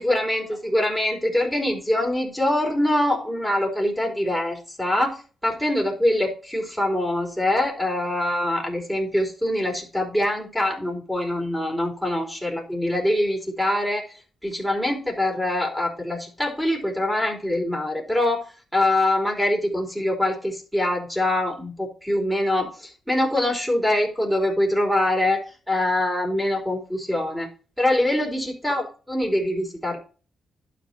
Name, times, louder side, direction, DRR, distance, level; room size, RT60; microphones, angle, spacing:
voice 1, 0.0-14.0 14.4-27.5 27.8-30.0, left 1 dB, ahead, -1 dB, 4.6 m, -24 dB
12.0 x 5.2 x 4.5 m, 0.37 s
cardioid pair, 95°, 0 cm